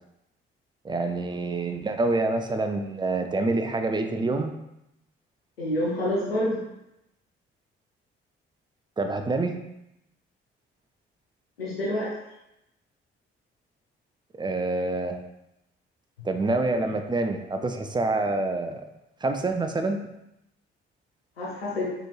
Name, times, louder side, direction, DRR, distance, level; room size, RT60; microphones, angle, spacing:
voice 1, 0.8-4.5 9.0-9.5 14.4-15.2 16.2-18.8 19.2-20.0, right 2 dB, 15° right, 5 dB, 0.4 m, -26 dB
voice 2, 5.6-6.6 11.6-12.1 21.4-21.9, left 1 dB, 90° left, -5 dB, 0.6 m, -27 dB
4.2 x 3.1 x 2.3 m, 0.85 s
figure-of-eight pair, 40°, 29 cm